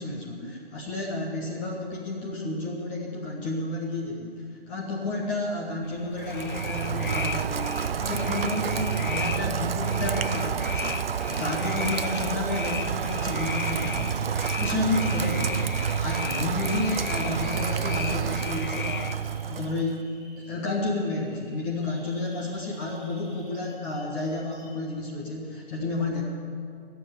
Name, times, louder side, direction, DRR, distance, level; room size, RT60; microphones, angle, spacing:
voice 1, 0.0-20.1 20.4-26.2, left 2 dB, 10° left, -3 dB, 0.9 m, -31 dB
sound 1, 5.8-19.1, left 6 dB, 55° left, 0.7 m, -37 dB
Rain, 6.2-20.0, right 7 dB, 70° right, 0.5 m, -29 dB
Bird vocalization bird call bird song, 10.9-24.8, right 1 dB, 10° right, 3.6 m, -53 dB
16.0 x 7.0 x 9.5 m, 2.4 s
figure-of-eight pair, 150°, 30 cm